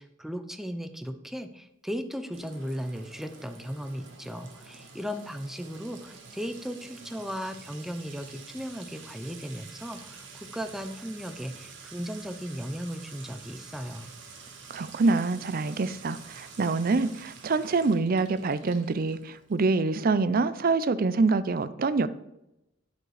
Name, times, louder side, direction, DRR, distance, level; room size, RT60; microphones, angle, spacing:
voice 1, 0.0-14.1, equal, ahead, 9 dB, 0.6 m, -36 dB
Sink (filling or washing) / Trickle dribble / Fill (with liquid), 2.3-19.8, right 5 dB, 65° right, 1.6 m, -48 dB
voice 2, 14.7-22.1, right 3 dB, 45° right, 15 dB, 0.5 m, -25 dB
12.0 x 5.2 x 4.9 m, 0.90 s
head